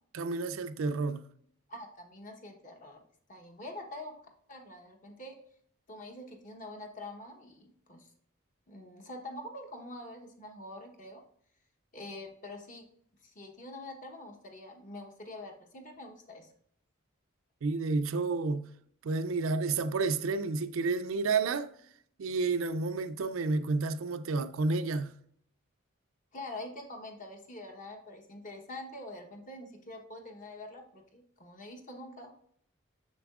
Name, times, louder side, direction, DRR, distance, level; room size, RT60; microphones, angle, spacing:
voice 1, 0.1-1.3 17.6-18.7 19.0-21.7 22.2-25.1, right 3 dB, 75° right, 0.4 m, -30 dB
voice 2, 1.7-3.0 3.3-4.2 4.5-5.3 5.9-8.1 8.7-11.2 11.9-12.8 13.2-16.5 26.3-32.3, left 1 dB, 40° left, 1.0 m, -45 dB
6.9 x 6.5 x 2.4 m
head